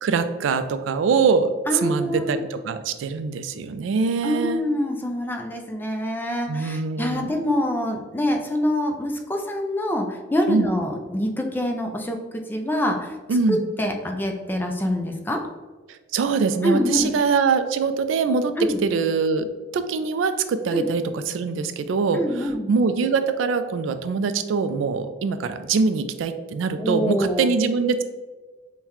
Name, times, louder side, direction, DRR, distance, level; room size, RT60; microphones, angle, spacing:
voice 1, 0.0-1.5 1.8-4.6 6.5-7.3 10.5-10.7 13.3-13.6 15.9-18.5 18.8-28.0, right 5 dB, 85° right, 10 dB, 0.3 m, -23 dB
voice 2, 1.7-2.4 4.2-13.2 13.5-15.4 16.6-17.1 18.6-18.8 20.7-20.9 22.1-22.7 26.8-27.5, left 1 dB, 10° left, 3 dB, 0.4 m, -25 dB
5.5 x 2.2 x 2.9 m, 1.3 s
head